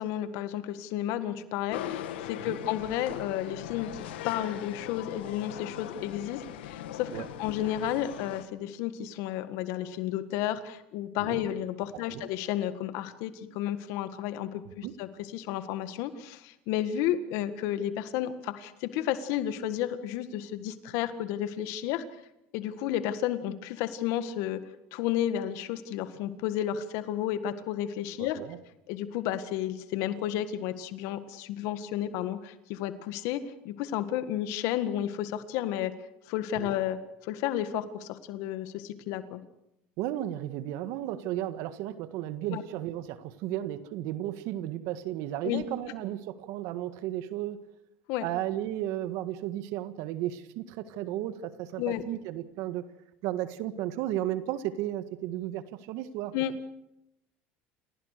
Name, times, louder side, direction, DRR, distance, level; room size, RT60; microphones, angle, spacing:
voice 1, 0.0-22.0 22.5-24.6 24.9-28.4 28.9-35.9 36.3-39.4 42.5-42.6 45.4-45.6 48.1-48.3 51.8-52.0 56.3-56.5, left 11 dB, 70° left, 11 dB, 1.7 m, -32 dB
sound 1, 1.7-8.4, left 11 dB, 90° left, 1.8 m, -40 dB
voice 2, 28.2-28.6 36.6-36.7 40.0-47.6 48.2-52.9 53.2-56.3, right 13 dB, 70° right, 11 dB, 1.7 m, -34 dB
29.5 x 16.5 x 6.7 m, 0.85 s
supercardioid pair, 100°, 6 cm